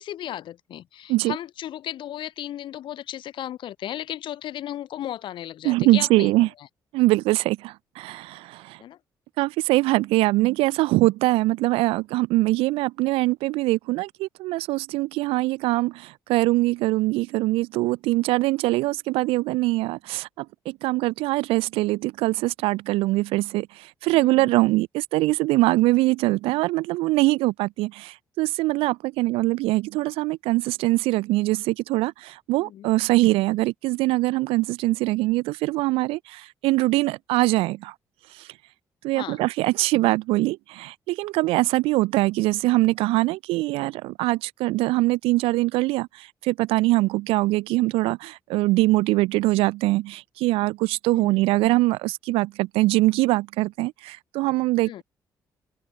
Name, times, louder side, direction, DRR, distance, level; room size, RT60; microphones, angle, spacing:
voice 1, 0.0-6.3 8.8-9.0 24.1-24.5 32.6-32.9 39.1-39.4 51.1-51.4 54.8-55.0, left 12 dB, 55° left, 0.4 m, -35 dB
voice 2, 5.6-6.5 6.9-8.8 9.4-37.9 39.0-55.0, right 20 dB, 65° right, 0.5 m, -23 dB
open air
figure-of-eight pair, 40°, 10 cm